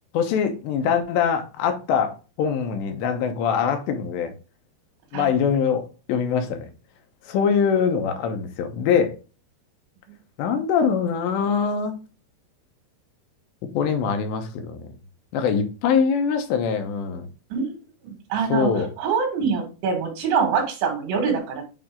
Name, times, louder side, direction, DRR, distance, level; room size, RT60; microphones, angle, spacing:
voice 1, 0.1-4.3 5.1-6.7 7.2-9.1 10.4-11.9 13.7-14.9 15.3-17.3 18.5-18.9, left 6 dB, 80° left, 6 dB, 3.1 m, -23 dB
voice 2, 18.0-18.7 19.0-21.6, right 6 dB, 85° right, 3 dB, 4.2 m, -24 dB
8.8 x 3.3 x 3.7 m, 0.33 s
omnidirectional pair, 5.1 m